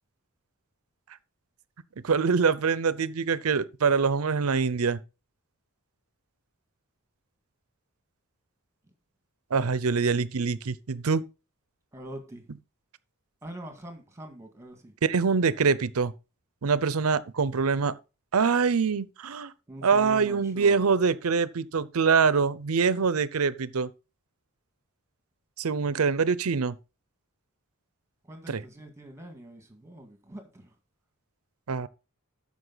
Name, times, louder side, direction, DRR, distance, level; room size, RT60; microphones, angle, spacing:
voice 1, 2.0-5.0 9.5-11.2 15.0-16.1 16.6-17.9 18.3-19.5 19.8-23.9 25.6-26.8 28.5-28.6 31.7-31.9, right 5 dB, 85° right, 0.6 m, -24 dB
voice 2, 11.9-12.4 13.4-14.9 19.7-20.8 28.2-30.7, right 1 dB, 15° right, 1.8 m, -44 dB
13.0 x 5.2 x 4.0 m
head